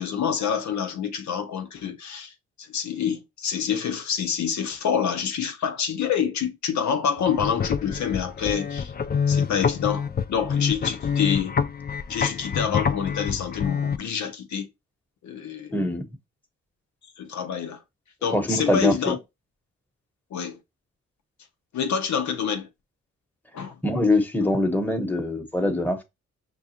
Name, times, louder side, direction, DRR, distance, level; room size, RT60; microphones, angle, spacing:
voice 1, 0.0-2.3 2.6-8.9 9.3-11.6 12.1-14.7 15.2-15.7 17.2-17.8 18.2-19.2 20.3-20.6 21.7-22.7 23.5-23.8, left 7 dB, 70° left, 0.7 m, -27 dB
sound 1, 7.2-14.0, left 6 dB, 35° left, 0.4 m, -26 dB
voice 2, 15.7-16.1 18.3-19.1 23.8-26.0, left 1 dB, 5° left, 1.0 m, -23 dB
6.0 x 2.4 x 2.8 m
supercardioid pair, 50°, 29 cm